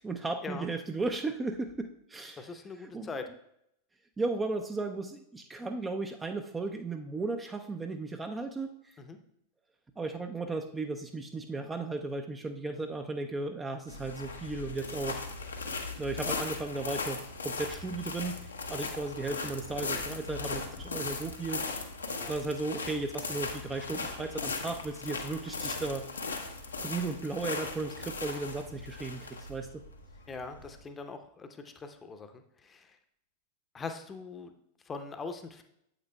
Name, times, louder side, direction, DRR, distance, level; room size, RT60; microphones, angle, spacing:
voice 1, 0.0-3.1 4.2-8.7 10.0-15.2 16.0-21.6 22.3-26.0 26.8-29.8, right 3 dB, 15° right, 5 dB, 0.4 m, -35 dB
voice 2, 2.4-3.3 9.0-9.2 18.7-18.9 22.2-22.3 30.3-32.9 33.7-34.5 34.9-35.6, left 4 dB, 20° left, 7 dB, 0.7 m, -42 dB
sound 1, 13.9-30.8, left 3 dB, 75° left, 0.8 m, -38 dB
8.8 x 7.9 x 2.2 m, 0.75 s
figure-of-eight pair, 90°, 0 cm